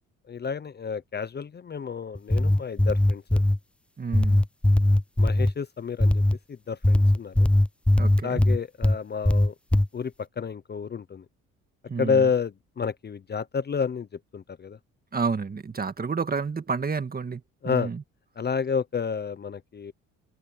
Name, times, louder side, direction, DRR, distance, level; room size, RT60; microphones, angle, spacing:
voice 1, 0.3-3.4 5.2-6.2 6.5-7.5 8.2-9.5 9.9-11.2 12.0-14.1 14.3-14.8 17.6-17.9 18.4-19.9, left 6 dB, 35° left, 0.8 m, -30 dB
sound 1, 2.1-3.6 4.1-5.5 6.0-6.4 6.8-9.0 9.2-9.9, left 1 dB, 5° left, 0.3 m, -20 dB
voice 2, 4.0-4.4 8.0-8.4 11.9-12.3 15.1-18.0, right 5 dB, 30° right, 2.0 m, -30 dB
open air
cardioid pair, 90°, 30 cm